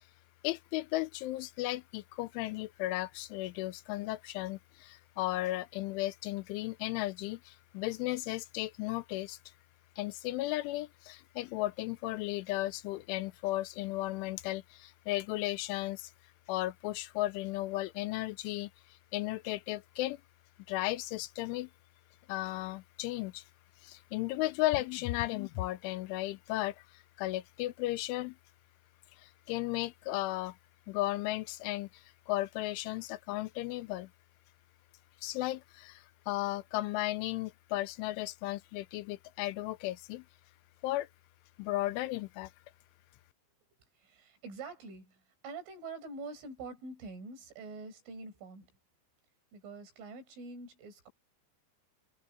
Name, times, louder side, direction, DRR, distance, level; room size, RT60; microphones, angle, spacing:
voice 1, 0.4-9.4 10.0-16.1 16.5-18.7 19.1-20.2 20.7-21.7 22.3-23.4 23.8-28.4 29.2-30.6 30.9-34.1 35.2-40.2 40.8-41.1 41.6-42.5, left 17 dB, 85° left, 3.1 m, -35 dB
voice 2, 44.0-48.7 49.5-51.1, right 3 dB, 80° right, 8.4 m, -45 dB
omnidirectional pair, 5.6 m